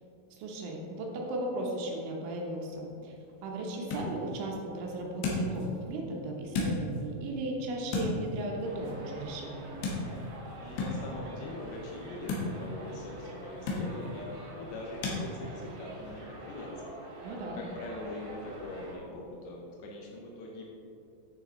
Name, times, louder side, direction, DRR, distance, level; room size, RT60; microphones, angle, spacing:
voice 1, 0.3-3.1 3.4-9.8 17.2-17.6, right 1 dB, 75° right, 0 dB, 3.4 m, -36 dB
sound 1, 2.7-15.2, left 2 dB, 70° left, 3.3 m, -38 dB
Subway metro underground, 8.6-18.9, right 1 dB, 60° right, 4.1 m, -46 dB
voice 2, 10.6-20.7, left 1 dB, 85° left, -2 dB, 2.2 m, -43 dB
9.6 x 6.5 x 3.8 m, 2.7 s
omnidirectional pair, 5.7 m